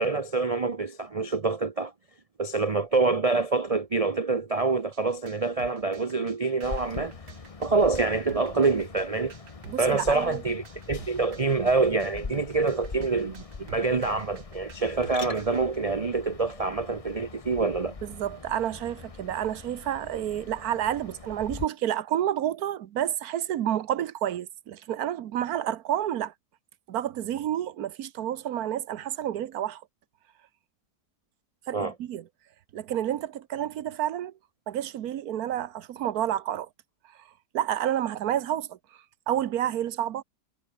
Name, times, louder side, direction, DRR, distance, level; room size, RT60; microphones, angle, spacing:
voice 1, 0.0-1.9 2.4-7.1 7.6-9.3 9.8-18.0 31.7-31.9, right 3 dB, 40° right, 0.5 m, -26 dB
sound 1, 2.5-17.6, left 5 dB, 65° left, 2.9 m, -53 dB
sound 2, 4.9-15.6, right 6 dB, 85° right, 2.8 m, -49 dB
sound 3, 6.6-21.7, left 4 dB, 25° left, 0.9 m, -43 dB
voice 2, 9.7-10.4 18.0-26.3 26.9-29.8 31.7-32.3 32.7-34.3 34.7-36.7 37.1-37.3 37.5-38.8 39.3-40.2, right 11 dB, 65° right, 1.3 m, -29 dB
omnidirectional pair, 1.8 m